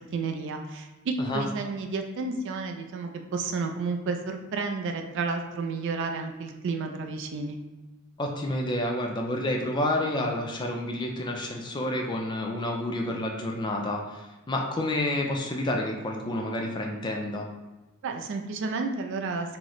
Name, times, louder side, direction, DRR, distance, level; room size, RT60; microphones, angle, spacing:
voice 1, 0.1-7.6 18.0-19.6, right 4 dB, 60° right, 4 dB, 0.3 m, -31 dB
voice 2, 8.2-17.5, left 1 dB, 20° left, 1 dB, 0.4 m, -29 dB
2.9 x 2.0 x 3.8 m, 1.1 s
head